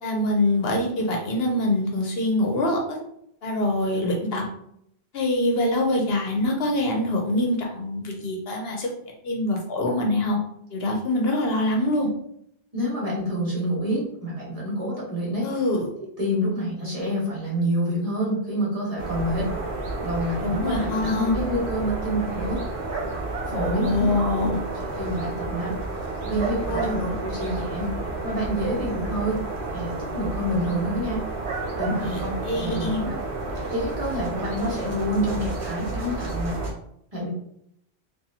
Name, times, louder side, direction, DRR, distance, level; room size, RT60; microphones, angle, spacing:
voice 1, 0.0-3.0 3.4-4.4 5.1-8.9 9.2-10.4 10.7-12.1 15.4-15.9 20.4-21.3 23.5-24.6 26.7-26.9 32.0-33.0, left 1 dB, 65° left, 1 dB, 0.9 m, -24 dB
voice 2, 12.7-15.5 16.2-19.5 20.0-22.6 23.4-24.5 25.0-25.7 26.2-27.9 28.2-29.4 29.7-31.2 31.7-33.1 33.7-36.6 37.1-37.3, equal, 35° right, -6 dB, 1.4 m, -28 dB
sound 1, 19.0-36.7, right 2 dB, 75° right, 1.2 m, -31 dB
4.0 x 2.6 x 2.8 m, 0.71 s
omnidirectional pair, 1.1 m